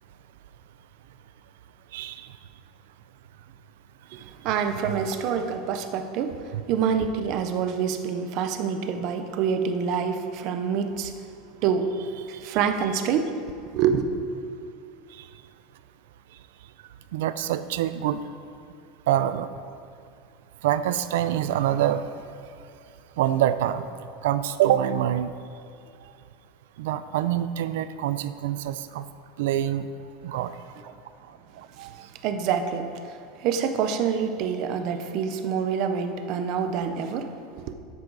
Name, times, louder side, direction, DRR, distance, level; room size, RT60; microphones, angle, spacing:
voice 1, 1.9-2.3 4.9-5.0 6.5-6.6 17.1-18.2 19.1-19.5 20.6-22.1 23.2-23.8 24.2-25.3 26.8-29.1 29.4-29.9 30.2-30.5 31.8-31.9, right 11 dB, 75° right, 13 dB, 0.6 m, -25 dB
voice 2, 4.1-11.1 11.6-12.0 12.3-14.1 31.8-31.9 32.2-37.7, right 7 dB, 40° right, 8 dB, 0.7 m, -27 dB
12.5 x 10.5 x 4.1 m, 2.4 s
supercardioid pair, 180°, 0 cm